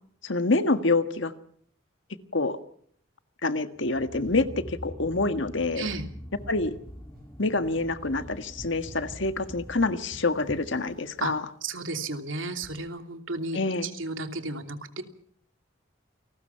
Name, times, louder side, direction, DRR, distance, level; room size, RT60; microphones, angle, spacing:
voice 1, 0.2-1.3 2.3-2.6 3.4-5.9 6.5-6.7 7.4-11.4 13.5-13.9, left 3 dB, 70° left, 9 dB, 1.6 m, -26 dB
sound 1, 3.8-10.3, equal, 15° left, 3.8 m, -44 dB
sound 2, 6.3-11.7 12.6-12.9, equal, 50° right, 5.6 m, -50 dB
voice 2, 11.6-15.0, right 3 dB, 80° right, 5 dB, 2.8 m, -33 dB
28.5 x 19.5 x 5.8 m, 0.62 s
head